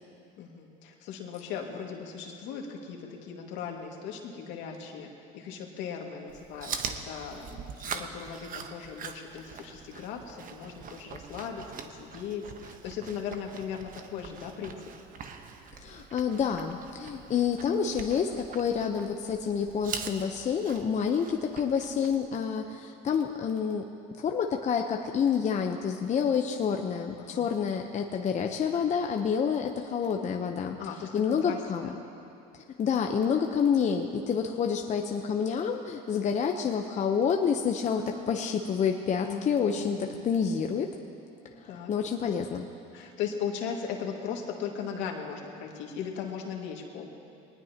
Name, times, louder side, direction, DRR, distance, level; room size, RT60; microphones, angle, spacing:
voice 1, 0.4-14.9 27.2-27.5 30.8-32.0 38.0-38.9 39.2-39.4 39.7-40.2 41.7-41.9 42.9-47.1, left 7 dB, 70° left, 1 dB, 2.1 m, -38 dB
Chewing mastication, 6.3-22.2, right 6 dB, 45° right, 1.1 m, -43 dB
voice 2, 15.8-23.8 24.2-30.8 31.1-31.9 32.8-40.9 41.9-42.7, left 7 dB, 40° left, 3 dB, 0.9 m, -28 dB
21.5 x 19.0 x 2.9 m, 2.7 s
supercardioid pair, 105°, 19 cm